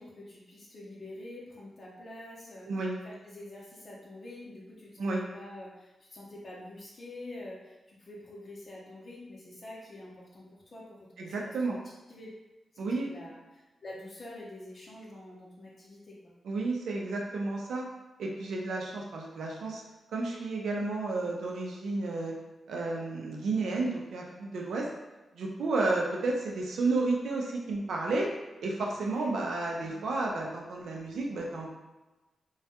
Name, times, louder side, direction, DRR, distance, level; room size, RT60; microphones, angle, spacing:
voice 1, 0.0-2.7 3.0-11.8 12.1-12.3 12.7-16.3 29.1-29.3 29.8-30.0, left 1 dB, 50° left, -5 dB, 0.6 m, -47 dB
voice 2, 2.7-3.0 5.0-5.2 11.2-11.8 12.8-13.1 16.4-17.9 18.2-19.8 20.1-22.4 22.7-24.9 25.3-28.3 28.6-31.7, right 3 dB, 85° right, -1 dB, 0.5 m, -31 dB
2.3 x 2.1 x 2.8 m, 1.1 s
cardioid pair, 65°, 0 cm